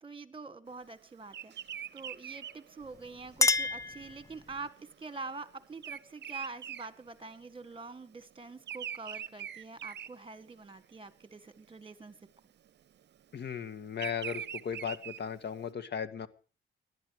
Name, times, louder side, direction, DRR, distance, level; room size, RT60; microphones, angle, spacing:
voice 1, 0.0-1.5 1.9-12.2, right 3 dB, 25° right, 13 dB, 2.0 m, -45 dB
Bird vocalization bird call bird song, 1.3-7.7 8.0-10.9 11.3-11.7 12.7-15.6, right 9 dB, 60° right, 0.7 m, -43 dB
Chink clink, 2.8-4.7, left 3 dB, 15° left, 0.8 m, -31 dB
voice 2, 13.3-16.3, left 7 dB, 55° left, 11 dB, 1.8 m, -37 dB
19.0 x 12.0 x 5.0 m, 0.38 s
cardioid pair, 85°, 21 cm